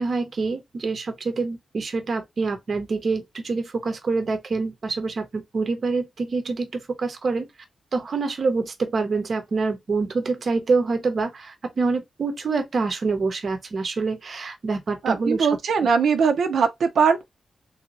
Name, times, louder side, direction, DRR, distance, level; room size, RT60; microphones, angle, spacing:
voice 1, 0.0-7.5 7.9-15.5 15.8-15.9, right 4 dB, 45° right, 0.7 m, -26 dB
voice 2, 15.0-17.2, right 6 dB, 85° right, 0.6 m, -20 dB
3.5 x 2.7 x 2.9 m
wide cardioid pair, 155°, 0 cm